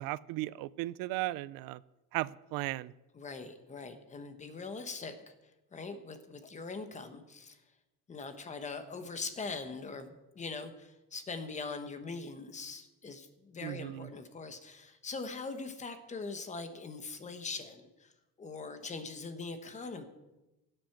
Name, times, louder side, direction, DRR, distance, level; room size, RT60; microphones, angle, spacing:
voice 1, 0.0-1.8 2.1-2.9 13.6-14.1, right 17 dB, 85° right, 20 dB, 0.5 m, -36 dB
voice 2, 3.1-5.3 5.7-7.6 8.1-18.1 18.4-20.0, left 4 dB, 20° left, 9 dB, 1.0 m, -42 dB
17.0 x 7.8 x 5.9 m, 1.0 s
cardioid pair, 170°, 34 cm